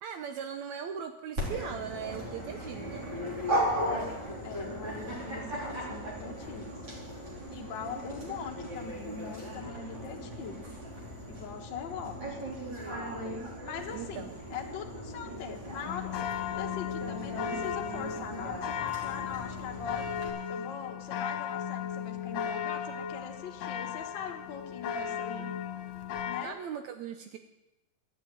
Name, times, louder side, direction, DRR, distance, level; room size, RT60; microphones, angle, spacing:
voice 1, 0.0-3.1 8.3-8.4 13.9-14.4 26.4-27.4, right 8 dB, 75° right, 7 dB, 1.9 m, -39 dB
Dog, 1.4-20.3, equal, 40° right, 4.4 m, -37 dB
voice 2, 3.8-6.7 7.5-10.7 11.3-12.4 13.6-20.0 20.5-25.5 26.2-26.6, left 6 dB, 50° left, 2 dB, 1.5 m, -41 dB
sound 1, 15.9-26.4, left 8 dB, 75° left, 2.3 m, -36 dB
13.0 x 7.7 x 8.9 m, 0.98 s
omnidirectional pair, 3.5 m